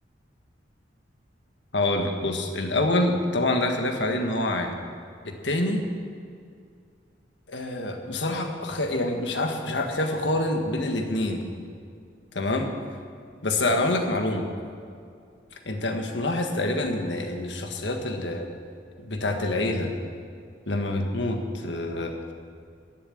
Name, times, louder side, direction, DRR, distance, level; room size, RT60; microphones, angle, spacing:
voice 1, 1.7-4.7 5.2-5.8 7.5-11.4 12.3-12.7 13.4-14.5 15.6-18.5 19.0-19.9 20.7-22.2, left 2 dB, 75° left, 4 dB, 1.6 m, -26 dB
14.0 x 7.4 x 10.0 m, 2.3 s
head